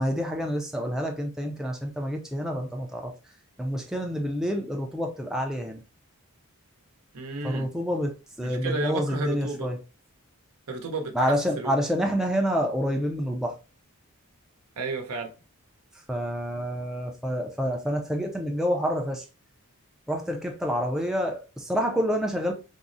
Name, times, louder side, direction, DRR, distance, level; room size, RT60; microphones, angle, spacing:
voice 1, 0.0-3.1 3.6-5.8 7.4-9.8 11.1-13.6 16.1-19.2 20.1-22.5, equal, ahead, 0.3 m, -28 dB
voice 2, 7.1-7.7 8.4-9.7 10.7-11.7 14.8-15.3, right 2 dB, 85° right, 0.8 m, -32 dB
3.6 x 2.0 x 2.5 m
head